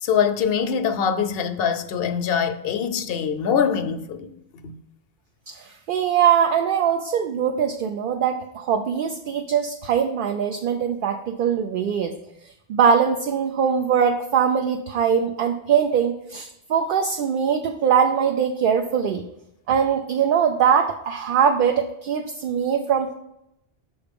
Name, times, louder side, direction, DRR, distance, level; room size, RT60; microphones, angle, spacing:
voice 1, 0.0-4.7, left 7 dB, 70° left, 0.8 m, -24 dB
voice 2, 5.5-12.2 12.7-19.2 19.7-23.1, right 7 dB, 60° right, 0.7 m, -22 dB
6.7 x 4.3 x 5.1 m
omnidirectional pair, 1.1 m